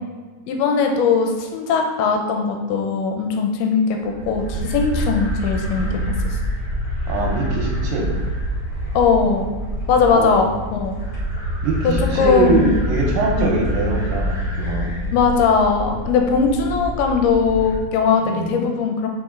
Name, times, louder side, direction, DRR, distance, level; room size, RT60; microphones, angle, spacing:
voice 1, 0.5-5.9 6.3-6.4 8.9-9.5 9.9-10.5 10.7-11.0 11.8-12.7 13.4-13.5 15.1-19.1, left 5 dB, 80° left, 3 dB, 2.5 m, -19 dB
sound 1, 4.0-17.8, equal, 45° left, 1.1 m, -26 dB
voice 2, 5.7-6.1 7.1-8.2 10.1-10.5 11.6-15.0 18.2-18.6, right 3 dB, 75° right, -1 dB, 2.2 m, -23 dB
5.2 x 5.0 x 3.7 m, 1.3 s
omnidirectional pair, 4.8 m